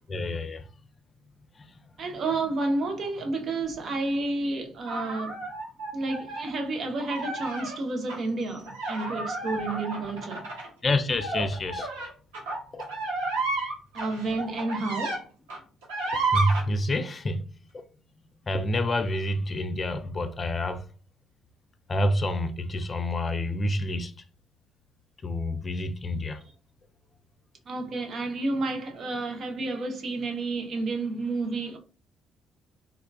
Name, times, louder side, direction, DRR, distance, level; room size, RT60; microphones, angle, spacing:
voice 1, 0.1-0.7 1.6-1.8 10.8-11.9 12.7-12.8 16.1-17.5 17.7-17.8 18.5-20.8 21.9-24.1 25.2-26.4, left 1 dB, 35° left, 0.4 m, -28 dB
voice 2, 2.0-5.4 5.9-10.5 13.9-15.3 27.7-31.8, right 2 dB, 50° right, 0.8 m, -30 dB
sound 1, 4.9-6.5 7.0-7.8 8.1-8.2 8.7-15.2 15.5-16.6, right 3 dB, 80° right, 0.8 m, -32 dB
3.6 x 2.3 x 2.3 m
hypercardioid pair, 50°, 0 cm